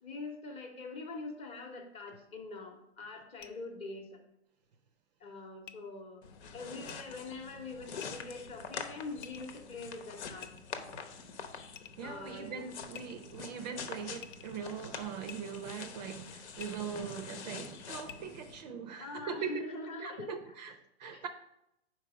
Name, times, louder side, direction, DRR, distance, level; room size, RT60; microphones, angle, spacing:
voice 1, 0.0-4.2 5.2-6.3 6.5-10.6 12.0-12.9 19.0-20.5 21.1-21.3, left 3 dB, 20° left, 0.8 m, -44 dB
sound 1, 3.4-3.5 5.6-5.7 6.8-7.0 8.0-8.3 9.2-9.6 10.4-10.9 11.8-12.1 12.9-13.5 14.2-14.6 15.3-15.4 16.6-16.7 18.0-18.2, left 9 dB, 50° left, 0.6 m, -49 dB
sound 2, 6.2-18.6, left 6 dB, 70° left, 1.0 m, -46 dB
voice 2, 12.0-19.7 20.0-21.3, right 6 dB, 40° right, 0.5 m, -41 dB
4.7 x 4.5 x 5.9 m
hypercardioid pair, 145°, 34 cm